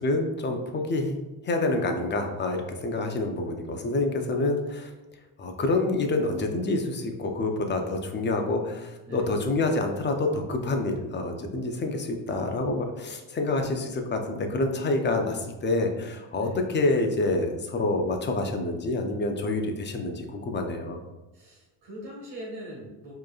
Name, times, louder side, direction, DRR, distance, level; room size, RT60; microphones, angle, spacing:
voice 1, 0.0-1.2 1.4-4.9 5.4-21.0, left 2 dB, 25° left, 4 dB, 0.5 m, -27 dB
voice 2, 21.3-23.1, equal, 70° right, -4 dB, 1.5 m, -41 dB
4.7 x 3.1 x 2.4 m, 1.1 s
cardioid pair, 110°, 40 cm